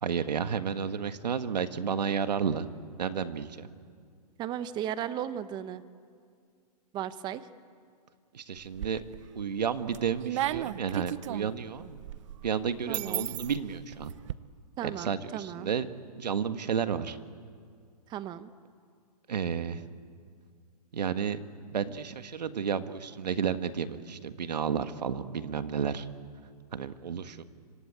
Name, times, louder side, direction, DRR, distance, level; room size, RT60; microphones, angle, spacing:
voice 1, 0.0-2.7 3.0-3.7 8.3-9.0 9.4-12.0 12.4-14.1 14.8-15.9 16.2-17.2 19.3-19.8 20.9-21.4 21.7-26.1 26.7-27.4, right 7 dB, 85° right, 10 dB, 1.7 m, -31 dB
voice 2, 4.4-5.8 6.9-7.5 12.9-13.3 14.8-15.7 18.1-18.5, right 10 dB, 20° right, 13 dB, 1.0 m, -35 dB
sound 1, 8.6-9.3 9.7-14.3, right 13 dB, 50° right, 0.7 m, -35 dB
26.5 x 25.0 x 8.8 m, 2.2 s
hypercardioid pair, 145°, 21 cm